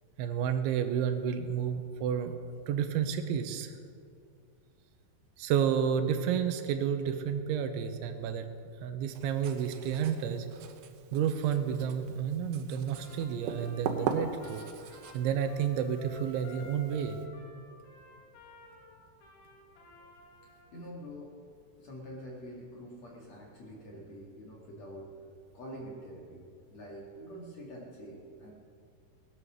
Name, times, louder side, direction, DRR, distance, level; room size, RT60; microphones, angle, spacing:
voice 1, 0.2-2.4 2.7-3.7 5.4-8.5 8.8-10.5 11.1-14.6 15.1-17.2, right 8 dB, 90° right, 8 dB, 3.3 m, -30 dB
Writing, 9.1-17.3, right 6 dB, 70° right, 2.6 m, -41 dB
Trumpet, 12.9-20.7, left 2 dB, 75° left, 4.6 m, -54 dB
voice 2, 20.7-21.4 21.8-25.1 25.5-28.5, equal, 45° left, -3 dB, 2.5 m, -46 dB
19.0 x 11.0 x 6.3 m, 2.3 s
omnidirectional pair, 5.4 m